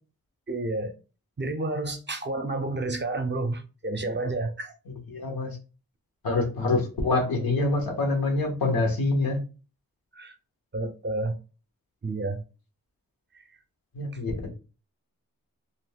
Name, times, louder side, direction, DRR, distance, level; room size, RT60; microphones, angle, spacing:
voice 1, 0.5-0.9 1.4-4.7 10.1-10.4 10.7-11.4 12.0-12.4 13.3-13.5, right 2 dB, 30° right, 0.6 m, -30 dB
voice 2, 5.1-5.6 6.2-9.4 13.9-14.5, left 2 dB, 80° left, 1.1 m, -25 dB
2.5 x 2.1 x 3.4 m
cardioid pair, 40°, 35 cm